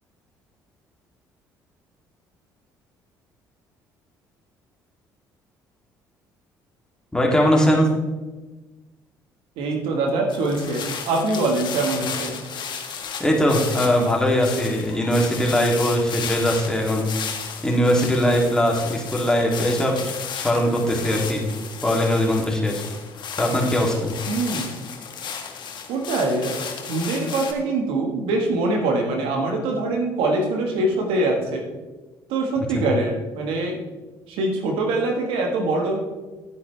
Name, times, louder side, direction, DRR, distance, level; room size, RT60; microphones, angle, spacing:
voice 1, 7.1-7.9 13.2-17.3 17.6-21.4 21.8-22.8 23.4-24.1 32.6-32.9, equal, 5° left, -2 dB, 2.9 m, -21 dB
voice 2, 9.6-12.4 24.3-24.8 25.9-26.6 26.9-31.6 32.3-33.8 34.3-36.0, right 2 dB, 75° right, 2 dB, 1.6 m, -23 dB
sound 1, 10.3-27.5, left 7 dB, 55° left, 1.4 m, -34 dB
11.0 x 9.6 x 3.4 m, 1.2 s
hypercardioid pair, 55°, 9 cm